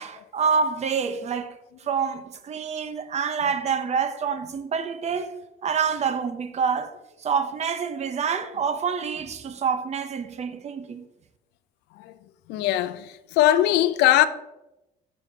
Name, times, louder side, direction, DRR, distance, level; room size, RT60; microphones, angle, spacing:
voice 1, 0.0-5.3 5.6-11.0, right 6 dB, 40° right, 0.7 m, -27 dB
voice 2, 12.5-14.3, left 13 dB, 90° left, 0.5 m, -21 dB
9.7 x 6.3 x 2.8 m
cardioid pair, 110°, 17 cm